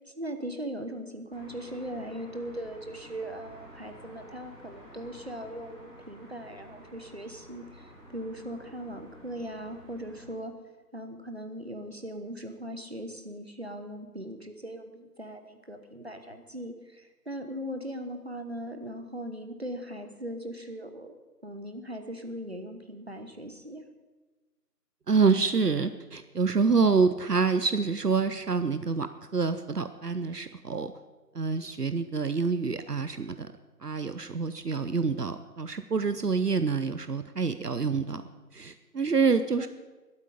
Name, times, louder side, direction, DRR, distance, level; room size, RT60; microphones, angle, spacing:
voice 1, 0.1-10.6 10.9-21.1 21.4-23.8 39.6-39.7, equal, 40° right, 7 dB, 1.0 m, -39 dB
sound 1, 1.3-10.3, equal, 5° left, 4.2 m, -51 dB
voice 2, 25.1-30.9 31.3-33.5 33.8-38.2 38.5-39.7, right 5 dB, 70° right, 10 dB, 0.8 m, -27 dB
20.5 x 8.3 x 5.1 m, 1.2 s
figure-of-eight pair, 170°, 49 cm